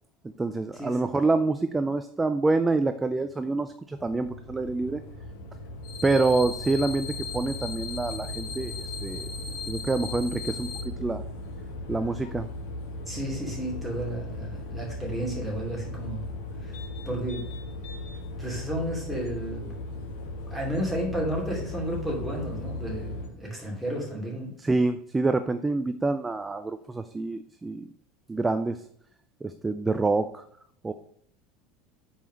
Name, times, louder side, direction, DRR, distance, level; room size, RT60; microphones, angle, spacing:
voice 1, 0.4-5.0 6.0-8.7 9.0-9.2 9.7-11.2 11.9-12.5 24.6-27.9 28.3-28.8 29.4-30.4 30.8-30.9, right 3 dB, 10° right, 9 dB, 0.3 m, -26 dB
sound 1, 3.9-23.3, left 1 dB, 80° left, 1.5 m, -37 dB
sound 2, 5.8-10.8, left 6 dB, 45° left, 2.6 m, -38 dB
voice 2, 13.1-16.3 16.6-16.7 17.1-17.5 18.4-19.7 20.5-24.5, right 1 dB, 5° left, -3 dB, 2.7 m, -32 dB
5.5 x 4.4 x 6.1 m, 0.65 s
supercardioid pair, 140°, 0 cm